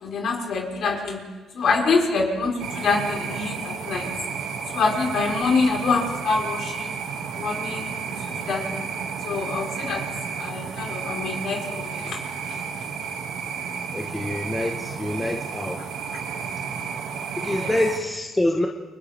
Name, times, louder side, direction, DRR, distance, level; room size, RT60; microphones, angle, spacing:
voice 1, 0.0-1.2 1.5-4.1 4.7-6.9 7.4-7.9 8.3-8.9 9.2-10.0 10.4-12.1 17.5-17.7, left 4 dB, 55° left, 0 dB, 4.6 m, -25 dB
sound 1, 2.6-18.0, right 6 dB, 80° right, 2.3 m, -32 dB
voice 2, 13.9-15.9 17.4-18.7, left 1 dB, 10° left, 1 dB, 1.3 m, -26 dB
30.0 x 25.5 x 3.6 m, 1.3 s
cardioid pair, 140°, 0 cm